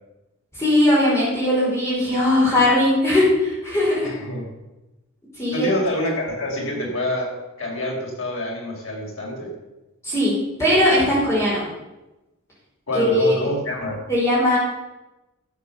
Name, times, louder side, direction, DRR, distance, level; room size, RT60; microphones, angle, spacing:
voice 1, 0.6-4.1 5.4-5.7 10.0-10.3 10.6-11.6 12.9-13.3 14.1-14.6, left 1 dB, 15° left, -7 dB, 5.0 m, -19 dB
voice 2, 4.0-4.5 5.5-9.5 12.9-14.0, left 1 dB, 70° left, -2 dB, 4.5 m, -27 dB
12.0 x 8.3 x 7.0 m, 1.0 s
head